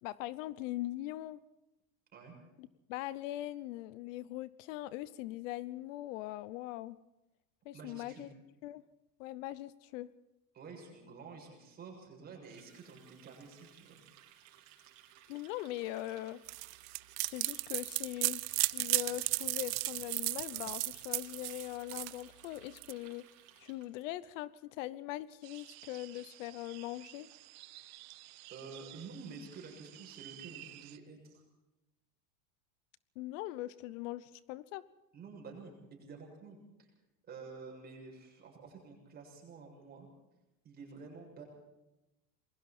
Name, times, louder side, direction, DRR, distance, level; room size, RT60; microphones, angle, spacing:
voice 1, 0.0-1.4 2.6-7.0 7.6-8.3 8.6-8.8 9.2-10.1 15.3-16.4 17.2-23.2 23.6-27.3 33.2-34.8, left 15 dB, 65° left, 18 dB, 0.9 m, -41 dB
voice 2, 7.7-8.3 10.5-14.0 28.5-31.4 35.1-36.9 37.3-40.1 40.6-41.4, right 4 dB, 20° right, 0 dB, 7.0 m, -50 dB
Water tap faucet, 12.4-24.0, right 12 dB, 65° right, 4.2 m, -60 dB
sound 1, 16.5-22.9, right 22 dB, 85° right, 0.8 m, -34 dB
sound 2, 25.4-31.0, right 18 dB, 40° right, 1.0 m, -53 dB
27.5 x 21.5 x 4.4 m, 0.96 s
cardioid pair, 175°, 41 cm